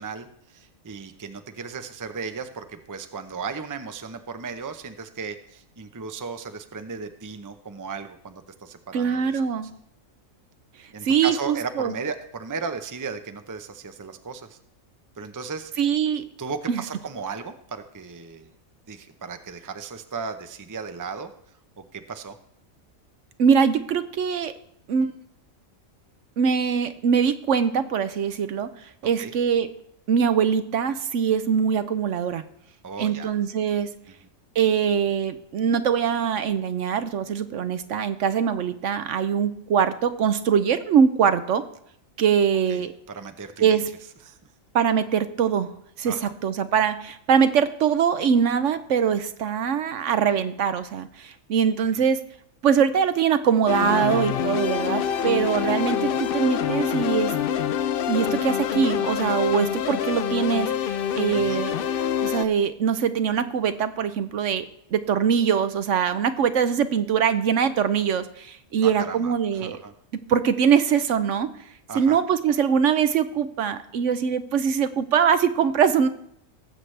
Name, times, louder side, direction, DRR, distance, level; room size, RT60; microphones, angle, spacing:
voice 1, 0.0-9.4 10.9-14.6 15.2-15.7 16.4-18.5 18.9-21.3 21.8-22.4 29.2-29.3 32.8-33.3 42.7-43.8 44.3-44.4 46.0-46.3 61.3-61.6 68.8-69.9 71.9-72.2, right 5 dB, 20° right, 8 dB, 0.5 m, -35 dB
voice 2, 8.9-9.7 11.0-11.9 15.8-16.2 16.7-16.8 23.4-24.5 24.9-25.1 26.4-29.7 30.1-32.4 33.0-33.9 34.6-41.6 42.2-42.9 43.6-43.9 44.7-45.7 46.0-46.2 46.4-52.2 52.6-57.3 58.1-61.8 62.2-64.7 64.9-69.8 70.3-71.5 71.9-76.1, right 7 dB, 65° right, 11 dB, 0.9 m, -22 dB
sound 1, 53.7-62.5, left 9 dB, 60° left, 0.6 m, -26 dB
19.0 x 7.8 x 3.3 m, 0.71 s
omnidirectional pair, 1.4 m